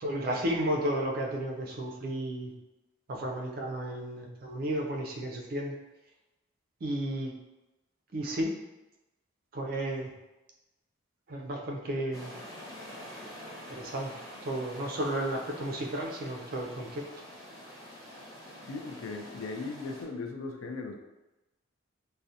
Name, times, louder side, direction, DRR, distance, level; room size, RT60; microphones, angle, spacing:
voice 1, 0.0-2.5 3.1-5.7 6.8-7.3 8.1-8.5 9.5-10.1 11.3-12.3 13.7-14.1 14.4-17.0, right 1 dB, 45° right, 0 dB, 0.3 m, -33 dB
sound 1, 12.1-20.0, equal, 20° left, 0.5 m, -46 dB
voice 2, 18.7-21.0, left 3 dB, 90° left, 4 dB, 0.4 m, -38 dB
2.5 x 2.0 x 2.6 m, 1.0 s
head